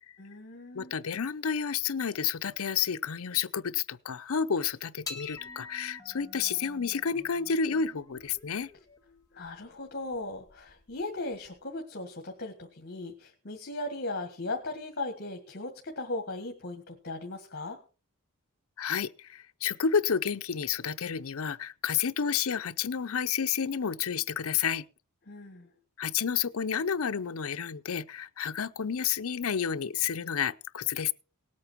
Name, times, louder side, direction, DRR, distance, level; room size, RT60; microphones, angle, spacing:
voice 1, 0.2-0.9 9.3-17.8 25.3-25.7, left 2 dB, 50° left, 1.8 m, -37 dB
voice 2, 0.7-8.7 18.8-24.8 26.0-31.1, left 7 dB, 70° left, 0.6 m, -30 dB
sound 1, 5.0-11.6, left 4 dB, 15° left, 1.6 m, -47 dB
18.5 x 8.6 x 4.5 m
head